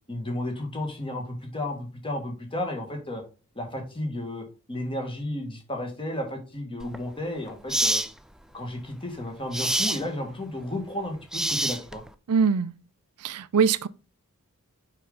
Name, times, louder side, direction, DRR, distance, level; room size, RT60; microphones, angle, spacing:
voice 1, 0.1-3.2 3.6-8.0 8.5-12.0, left 1 dB, 25° left, 1.8 m, -33 dB
sound 1, 6.8-7.0 7.7-8.1 9.5-10.0 11.3-12.1, right 1 dB, ahead, 0.3 m, -26 dB
voice 2, 12.3-12.8 13.2-13.9, right 6 dB, 85° right, 0.5 m, -23 dB
6.5 x 5.2 x 3.9 m
head